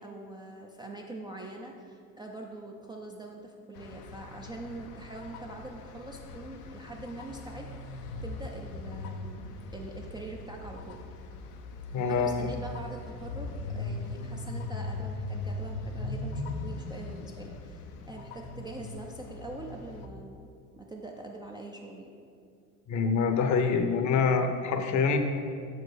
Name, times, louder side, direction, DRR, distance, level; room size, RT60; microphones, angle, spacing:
voice 1, 0.0-11.0 12.0-20.5 20.8-22.1, right 2 dB, 10° right, 0 dB, 0.3 m, -43 dB
Cross Walk, 3.7-20.1, left 2 dB, 85° left, 0.7 m, -40 dB
voice 2, 11.9-12.5 22.9-25.2, left 5 dB, 40° left, 6 dB, 0.7 m, -25 dB
6.0 x 4.6 x 4.9 m, 2.3 s
hypercardioid pair, 85°, 46 cm